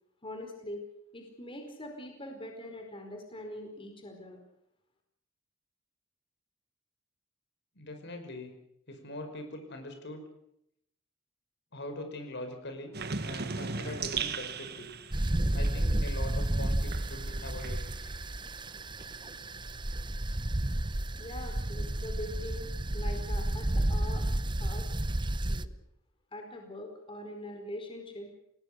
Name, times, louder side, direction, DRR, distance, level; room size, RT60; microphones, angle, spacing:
voice 1, 0.2-0.8 1.1-4.4 21.2-24.2 24.6-24.9 25.5-25.7 26.3-28.3, left 1 dB, 25° left, 3 dB, 4.7 m, -43 dB
voice 2, 7.8-8.5 8.9-10.2 11.7-12.9 13.2-14.9 15.5-17.9, left 1 dB, 60° left, 6 dB, 5.4 m, -42 dB
sound 1, 12.9-18.3 18.6-20.3, right 5 dB, 55° right, 1.7 m, -39 dB
sound 2, 15.1-25.7, right 1 dB, 25° right, 0.9 m, -31 dB
29.0 x 19.0 x 6.7 m, 0.76 s
head